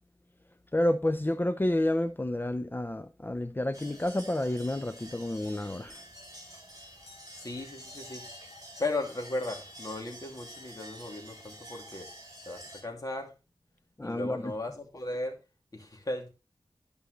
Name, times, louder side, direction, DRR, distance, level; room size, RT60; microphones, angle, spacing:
voice 1, 0.7-5.9 14.0-14.5, left 1 dB, 25° left, 0.7 m, -29 dB
sound 1, 3.7-12.8, equal, 40° right, 4.5 m, -48 dB
voice 2, 7.3-8.2 8.8-12.1 12.4-13.3 14.0-15.4 15.7-16.3, left 2 dB, 40° left, 2.7 m, -36 dB
13.5 x 5.4 x 3.2 m
wide cardioid pair, 65°, 9 cm